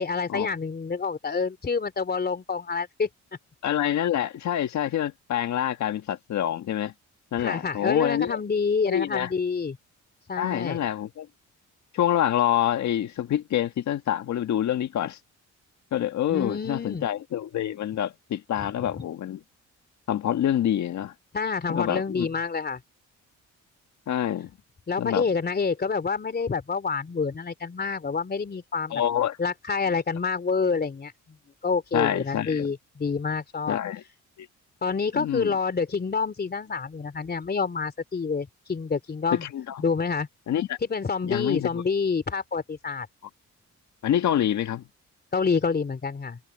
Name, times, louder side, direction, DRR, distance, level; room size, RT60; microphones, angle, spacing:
voice 1, 0.0-3.1 7.4-9.8 10.3-10.8 16.3-17.0 18.6-18.7 21.3-22.8 24.9-29.0 29.4-31.1 31.6-33.8 34.8-39.4 39.8-40.3 40.8-43.1 45.3-46.4, left 5 dB, 30° left, 3.2 m, -27 dB
voice 2, 3.6-6.9 7.3-8.4 8.9-9.3 10.4-11.3 11.9-15.2 15.9-19.4 20.1-21.1 21.7-22.3 24.1-24.5 25.0-25.2 28.9-29.4 31.9-32.7 33.7-34.0 34.4-34.5 35.1-35.5 39.3-39.8 40.5-40.8 41.2-41.8 44.0-44.8, left 11 dB, 70° left, 1.7 m, -26 dB
cardioid pair, 90°, 30 cm